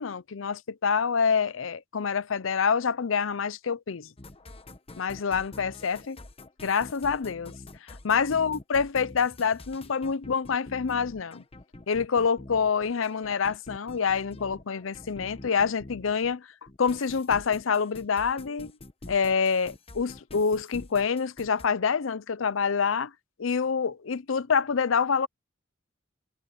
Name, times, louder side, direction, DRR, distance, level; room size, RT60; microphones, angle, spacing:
voice 1, 0.0-4.1 5.0-6.2 6.6-7.5 8.0-11.4 11.9-16.5 16.8-18.7 19.1-23.1 23.4-25.3, left 6 dB, 85° left, 0.6 m, -26 dB
sound 1, 4.2-16.3 16.7-21.7, left 2 dB, 30° left, 1.0 m, -46 dB
head